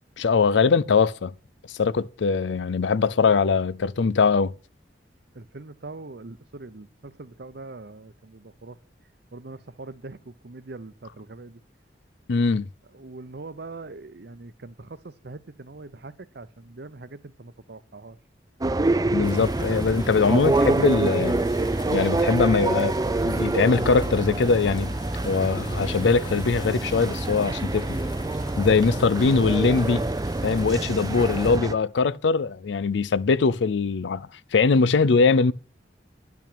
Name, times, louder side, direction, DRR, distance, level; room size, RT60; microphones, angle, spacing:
voice 1, 0.2-1.3 1.8-4.5 12.3-12.7 19.1-21.4 21.9-24.9 25.2-28.0 28.6-30.0 30.4-35.5, left 4 dB, 80° left, 0.5 m, -22 dB
voice 2, 5.3-8.8 9.3-11.6 12.9-18.2, right 3 dB, 60° right, 0.8 m, -42 dB
sound 1, 18.6-31.7, right 2 dB, 20° right, 0.5 m, -26 dB
sound 2, 19.2-31.6, left 3 dB, 25° left, 1.1 m, -46 dB
10.5 x 6.0 x 8.5 m
head